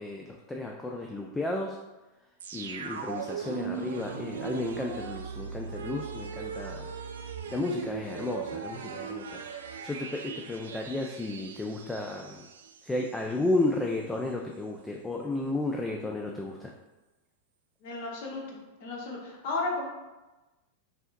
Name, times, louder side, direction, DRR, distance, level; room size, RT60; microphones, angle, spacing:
voice 1, 0.0-1.8 2.5-6.9 7.5-9.4 9.8-12.5 12.8-16.7, left 2 dB, 10° left, 1 dB, 0.4 m, -33 dB
sound 1, 2.4-13.2 13.5-13.6, right 6 dB, 65° right, 0.3 m, -39 dB
voice 2, 17.8-19.9, left 3 dB, 50° left, -2 dB, 1.1 m, -34 dB
5.4 x 2.8 x 2.5 m, 1.1 s
figure-of-eight pair, 90°, 0 cm